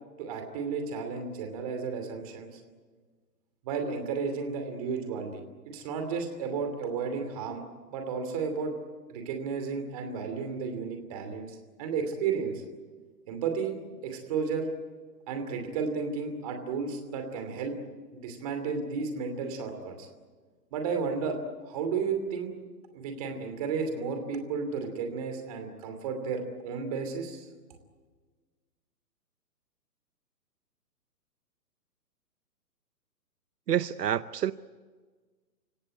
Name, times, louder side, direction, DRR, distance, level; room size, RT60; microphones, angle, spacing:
voice 1, 0.2-2.6 3.6-7.6 7.9-8.7 9.1-12.6 13.3-13.8 14.0-14.7 15.3-17.8 18.1-20.1 20.7-21.4 21.6-22.5 22.9-27.5, right 5 dB, 20° right, 5 dB, 2.8 m, -33 dB
voice 2, 33.7-34.5, right 10 dB, 75° right, 15 dB, 0.8 m, -27 dB
29.0 x 17.0 x 9.5 m, 1.4 s
hypercardioid pair, 170°, 49 cm